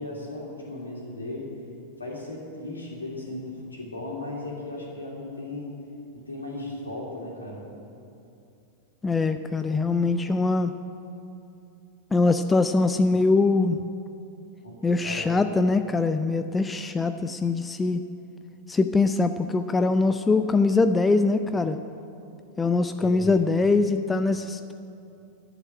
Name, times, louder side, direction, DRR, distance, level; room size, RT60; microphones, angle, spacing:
voice 1, 0.0-1.5 2.0-5.7 6.1-7.6 14.6-15.4 23.0-23.4, left 2 dB, 75° left, -2 dB, 2.8 m, -36 dB
voice 2, 9.0-10.7 12.1-13.8 14.8-18.0 18.7-21.8 22.6-24.7, left 3 dB, 15° left, 9 dB, 0.4 m, -23 dB
10.5 x 8.0 x 8.9 m, 2.6 s
figure-of-eight pair, 90°, 0 cm